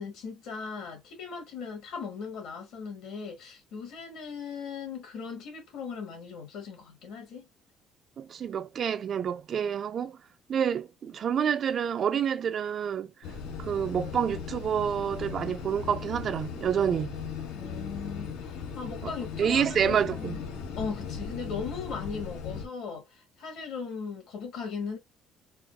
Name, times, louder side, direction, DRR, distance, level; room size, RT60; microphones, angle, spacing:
voice 1, 0.0-7.5 17.5-20.4 20.8-25.0, left 5 dB, 65° left, 1.8 m, -38 dB
voice 2, 8.2-10.2 10.5-13.1 13.6-17.1 19.0-19.1 19.4-20.4, right 8 dB, 40° right, 0.3 m, -28 dB
sound 1, 13.2-22.7, left 6 dB, 90° left, 0.9 m, -38 dB
4.1 x 2.3 x 2.3 m
cardioid pair, 145°, 0 cm